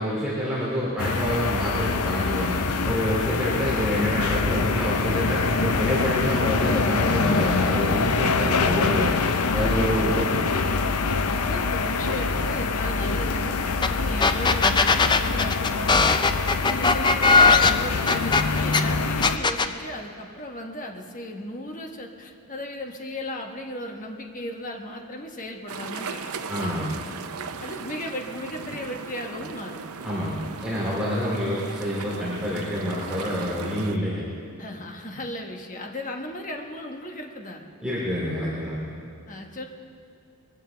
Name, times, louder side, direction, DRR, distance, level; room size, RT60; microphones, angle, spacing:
voice 1, 0.0-2.6 2.8-9.1 9.5-10.4 26.5-27.0 30.0-34.2 37.8-38.8, equal, 5° right, -9 dB, 2.7 m, -27 dB
sound 1, 1.0-19.4, left 4 dB, 85° left, 0.7 m, -25 dB
voice 2, 11.2-16.4 16.7-26.3 27.6-29.8 34.6-37.6 39.3-39.6, left 1 dB, 35° left, 2 dB, 1.2 m, -36 dB
sound 2, 13.8-13.9 14.2-18.8 19.2-19.7, left 4 dB, 20° left, 0.4 m, -19 dB
sound 3, 25.7-34.0, right 5 dB, 80° right, 0.7 m, -37 dB
22.0 x 14.5 x 3.4 m, 2.6 s
head